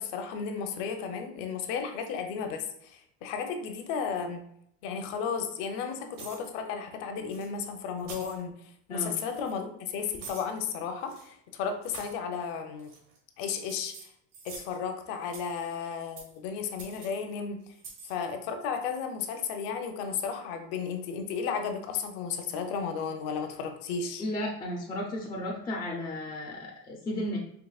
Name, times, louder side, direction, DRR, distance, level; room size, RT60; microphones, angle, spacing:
voice 1, 0.0-4.4 4.8-8.5 8.9-12.9 13.4-13.9 14.4-17.6 18.0-24.2, left 6 dB, 75° left, 5 dB, 0.8 m, -34 dB
sound 1, 6.1-6.5 7.3-7.5 8.0-8.4 9.1-9.5 10.2-10.5 11.0-11.3 11.8-12.2 12.8-13.2 13.5-14.8 15.2-15.6 16.2-16.4 16.8-17.1 17.7-18.1, right 4 dB, 75° right, 1.4 m, -46 dB
voice 2, 24.2-27.4, left 1 dB, 10° left, -2 dB, 0.4 m, -34 dB
4.8 x 3.0 x 2.3 m, 0.72 s
cardioid pair, 145°, 38 cm